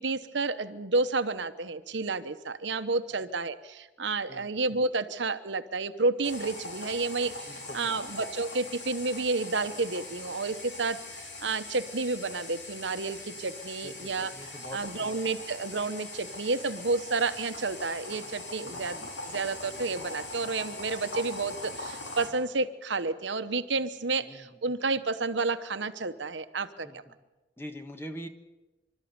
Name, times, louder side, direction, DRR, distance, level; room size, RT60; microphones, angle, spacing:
voice 1, 0.0-14.3 14.7-27.0, right 3 dB, 75° right, 11 dB, 1.1 m, -31 dB
sound 1, 6.2-22.3, left 2 dB, 70° left, 4.9 m, -41 dB
voice 2, 7.5-8.0 13.8-15.1 18.6-19.1 24.2-24.5 26.8-27.0 27.6-28.3, equal, 15° left, 6 dB, 1.5 m, -44 dB
26.5 x 13.0 x 9.6 m, 1.1 s
head